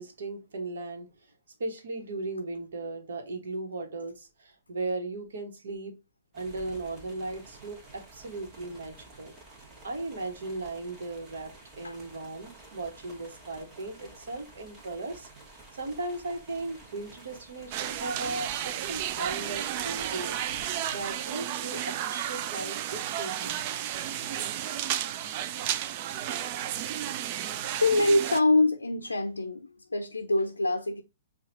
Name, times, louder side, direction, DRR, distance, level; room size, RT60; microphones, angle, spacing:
voice 1, 0.0-1.3 1.6-5.9 6.3-9.4 9.8-15.3 15.7-23.6, right 2 dB, 65° right, 1.2 m, -37 dB
sound 1, 6.3-21.3, right 2 dB, 25° right, 1.4 m, -51 dB
sound 2, 17.7-28.4, right 11 dB, 40° right, 0.4 m, -33 dB
voice 2, 27.7-31.0, left 2 dB, 85° left, 0.4 m, -25 dB
5.8 x 2.4 x 2.6 m
figure-of-eight pair, 115°, 0 cm